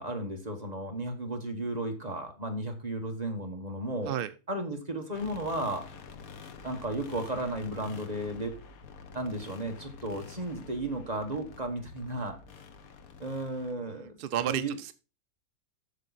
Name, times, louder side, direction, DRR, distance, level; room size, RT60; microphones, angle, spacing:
voice 1, 0.0-4.1 4.5-5.9 6.6-8.6 9.1-12.4 13.2-14.8, right 1 dB, 30° right, 4 dB, 1.4 m, -34 dB
sound 1, 5.1-13.7, left 5 dB, 85° left, 1.5 m, -48 dB
voice 2, 14.2-14.9, right 10 dB, 65° right, 12 dB, 0.5 m, -31 dB
8.3 x 7.3 x 4.0 m, 0.31 s
omnidirectional pair, 1.5 m